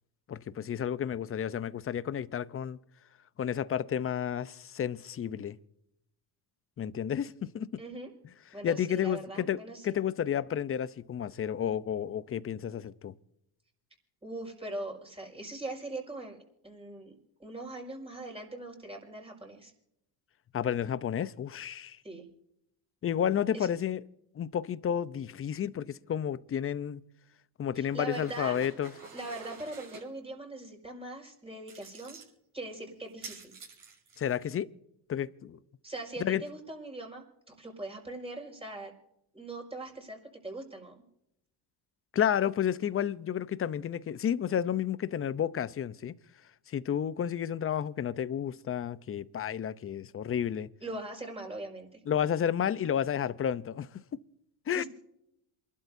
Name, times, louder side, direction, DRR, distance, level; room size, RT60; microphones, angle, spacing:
voice 1, 0.3-2.8 3.4-5.6 6.8-7.7 8.6-13.1 20.5-22.0 23.0-24.0 24.3-27.0 27.6-28.9 34.2-34.7 35.1-35.6 36.2-36.4 42.1-46.1 46.7-50.7 52.1-53.9 54.7-54.8, left 9 dB, 30° left, 0.7 m, -31 dB
voice 2, 7.8-8.1 8.5-10.0 14.2-19.7 22.0-22.3 23.5-23.7 27.8-28.5 29.1-32.2 32.5-33.5 35.8-38.9 39.3-41.0 50.8-52.0 54.7-54.9, right 2 dB, 10° right, 5.4 m, -41 dB
sound 1, 27.9-30.0 31.7-32.3 33.1-34.5, right 4 dB, 45° right, 6.6 m, -48 dB
28.0 x 12.0 x 2.7 m
supercardioid pair, 95°, 47 cm